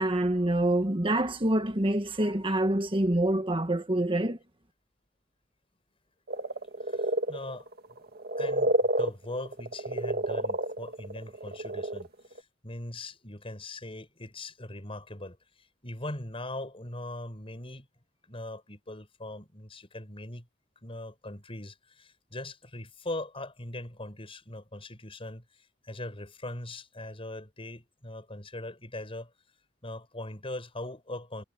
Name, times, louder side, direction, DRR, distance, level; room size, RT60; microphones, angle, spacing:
voice 1, 0.0-4.4, right 1 dB, 30° right, 1.5 m, -26 dB
sound 1, 6.3-12.1 12.3-12.4, right 1 dB, 55° right, 1.8 m, -29 dB
voice 2, 6.8-7.7 8.4-15.4 15.8-17.9 18.2-20.5 20.8-25.4 25.8-29.3 29.8-31.4, left 1 dB, 30° left, 7.1 m, -40 dB
head